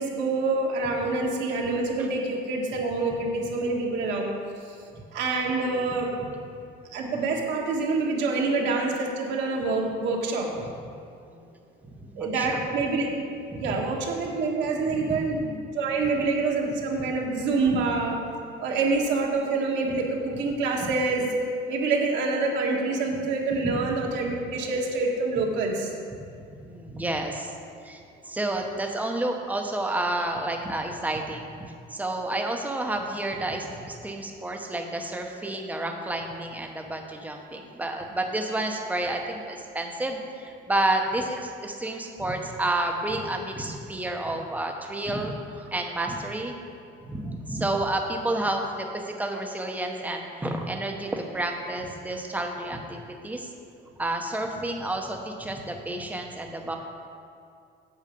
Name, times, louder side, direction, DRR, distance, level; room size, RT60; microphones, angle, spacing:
voice 1, 0.0-4.3 5.1-6.1 6.9-10.5 12.1-13.2 13.5-18.2 18.6-21.3 21.7-25.9, right 3 dB, 65° right, -1 dB, 1.6 m, -26 dB
voice 2, 11.9-12.6 13.5-13.7 17.7-17.8 20.8-20.9 23.6-23.9 26.6-27.5 27.8-46.5 47.0-53.5 54.0-56.8, right 1 dB, 10° right, 2 dB, 0.9 m, -30 dB
8.5 x 7.3 x 5.2 m, 2.5 s
cardioid pair, 140°, 19 cm